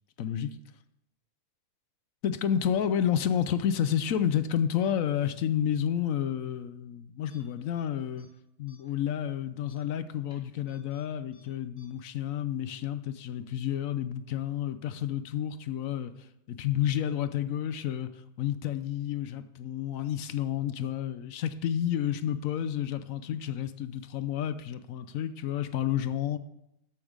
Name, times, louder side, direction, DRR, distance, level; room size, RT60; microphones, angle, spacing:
voice 1, 0.2-0.6 2.2-8.3 8.6-16.1 16.5-18.1 18.4-26.4, left 9 dB, 65° left, 0.9 m, -30 dB
sound 1, 7.3-7.8 8.1-8.3 8.7-9.0 9.6-11.0 11.3-11.4 11.8-11.9, left 1 dB, 5° right, 3.2 m, -63 dB
13.5 x 5.9 x 5.0 m
omnidirectional pair, 1.6 m